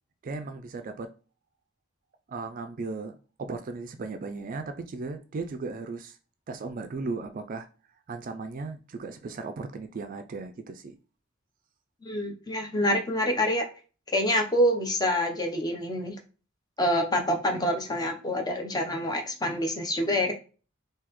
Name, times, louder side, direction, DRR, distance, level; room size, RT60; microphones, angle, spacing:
voice 1, 0.2-1.1 2.3-3.1 3.4-6.2 6.5-7.7 8.1-11.0, right 3 dB, 40° right, 0.3 m, -36 dB
voice 2, 12.0-13.7 14.1-16.2 16.8-20.3, equal, 20° left, 0.6 m, -26 dB
3.8 x 2.8 x 3.0 m
head